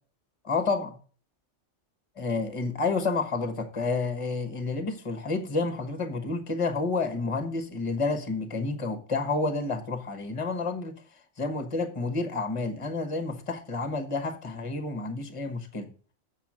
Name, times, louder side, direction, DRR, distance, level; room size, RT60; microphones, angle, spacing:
voice 1, 0.4-0.9 2.2-11.0 11.4-15.9, left 3 dB, 25° left, 1.1 m, -30 dB
7.7 x 5.0 x 7.4 m
omnidirectional pair, 1.3 m